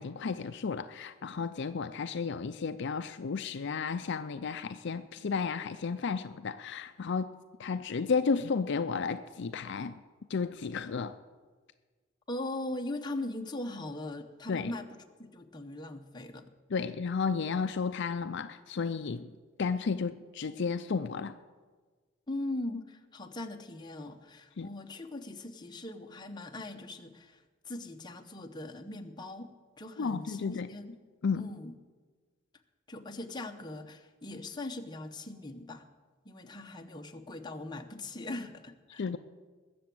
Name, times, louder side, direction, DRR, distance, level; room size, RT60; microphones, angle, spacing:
voice 1, 0.0-7.3 7.6-10.0 10.3-11.1 14.5-14.7 16.7-19.3 19.6-21.4 24.6-24.7 30.0-30.7 31.2-31.5 39.0-39.2, left 5 dB, 60° left, 10 dB, 0.5 m, -33 dB
voice 2, 12.3-16.5 22.3-31.0 31.3-31.7 32.9-35.9 36.2-39.0, left 2 dB, 20° left, 4 dB, 1.0 m, -40 dB
20.5 x 7.0 x 7.7 m, 1.4 s
head